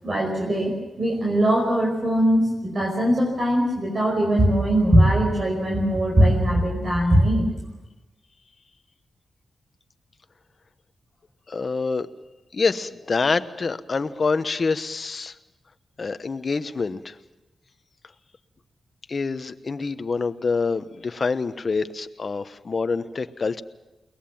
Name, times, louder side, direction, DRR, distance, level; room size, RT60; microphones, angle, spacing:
voice 1, 0.0-7.5, equal, 45° right, -1 dB, 5.2 m, -20 dB
voice 2, 11.5-12.1 12.5-15.3 16.0-17.2 19.1-23.6, left 4 dB, 45° left, 11 dB, 1.0 m, -26 dB
22.5 x 19.5 x 7.2 m, 1.0 s
cardioid pair, 80°, 0 cm